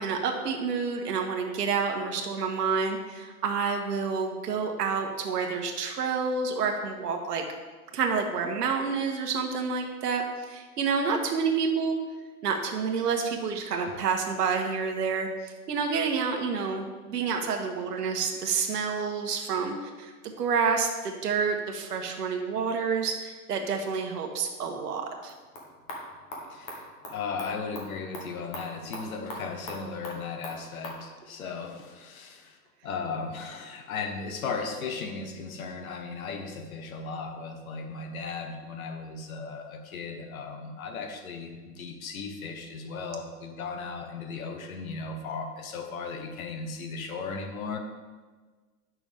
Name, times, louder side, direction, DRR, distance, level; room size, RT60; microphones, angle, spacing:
voice 1, 0.0-7.4 7.9-12.0 12.4-20.1 20.4-25.3, right 5 dB, 85° right, 2 dB, 1.3 m, -29 dB
sound 1, 25.2-31.0, left 1 dB, 15° left, 0.8 m, -42 dB
voice 2, 26.5-47.8, left 4 dB, 65° left, 5 dB, 1.3 m, -36 dB
9.1 x 6.1 x 3.5 m, 1.4 s
hypercardioid pair, 160°, 46 cm